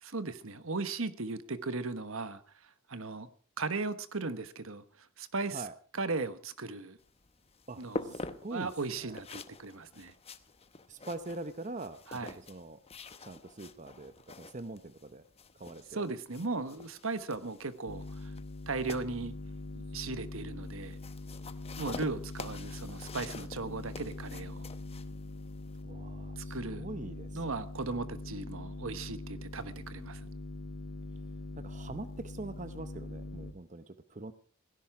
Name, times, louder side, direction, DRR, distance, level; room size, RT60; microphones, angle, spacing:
voice 1, 0.0-2.4 2.9-3.3 3.6-4.8 5.2-5.7 5.9-7.0 7.8-8.1 8.5-10.1 12.1-12.4 15.9-18.3 18.7-19.3 19.9-21.0 21.8-24.7 26.4-26.8 27.3-30.3, right 3 dB, 70° right, 1.3 m, -37 dB
sound 1, 7.0-25.8, left 3 dB, 30° left, 0.9 m, -47 dB
voice 2, 7.7-8.7 9.0-9.2 10.9-12.8 13.2-15.2 15.6-16.1 25.8-27.3 31.6-34.3, right 2 dB, 35° right, 0.8 m, -43 dB
sound 2, 17.8-33.5, left 2 dB, 75° left, 1.3 m, -43 dB
17.0 x 16.5 x 4.8 m
head